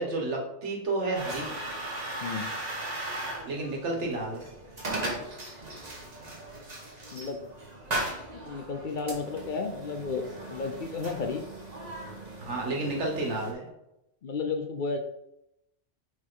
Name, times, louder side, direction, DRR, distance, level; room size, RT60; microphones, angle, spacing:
voice 1, 0.0-1.5 3.4-4.4 12.4-13.7, right 2 dB, 75° right, 0 dB, 1.6 m, -31 dB
sound 1, 1.1-13.5, right 1 dB, 35° right, 1.3 m, -38 dB
voice 2, 7.1-7.4 8.3-11.4 14.2-15.0, left 4 dB, 55° left, 5 dB, 0.6 m, -33 dB
6.2 x 4.8 x 3.8 m, 0.85 s
omnidirectional pair, 1.2 m